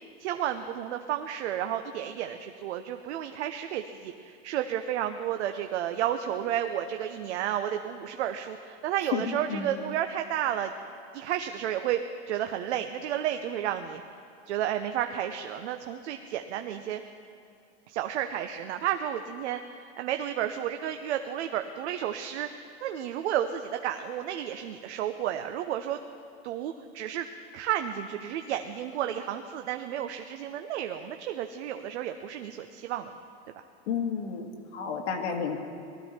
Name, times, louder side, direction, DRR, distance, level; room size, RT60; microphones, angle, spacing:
voice 1, 0.2-10.7 11.1-12.0 12.3-14.0 14.5-17.0 17.9-22.5 22.8-26.0 26.4-27.3 27.5-33.2, right 10 dB, 80° right, 7 dB, 0.8 m, -32 dB
voice 2, 33.9-35.6, left 7 dB, 90° left, 4 dB, 2.0 m, -31 dB
19.5 x 13.0 x 4.4 m, 2.6 s
supercardioid pair, 145°, 33 cm